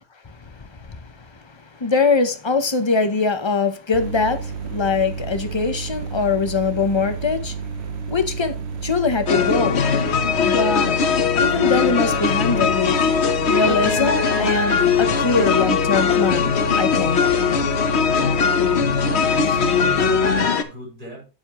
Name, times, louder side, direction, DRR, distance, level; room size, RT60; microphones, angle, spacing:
voice 1, 0.2-7.7 8.1-9.9 10.4-11.0 11.4-13.0 13.5-17.3, left 4 dB, 30° left, 0.8 m, -23 dB
sound 1, 3.9-20.4, right 6 dB, 80° right, 1.0 m, -31 dB
sound 2, 9.3-20.6, left 6 dB, 80° left, 1.2 m, -20 dB
voice 2, 18.9-21.3, right 1 dB, 50° right, 5.8 m, -35 dB
9.5 x 8.5 x 3.0 m
omnidirectional pair, 1.1 m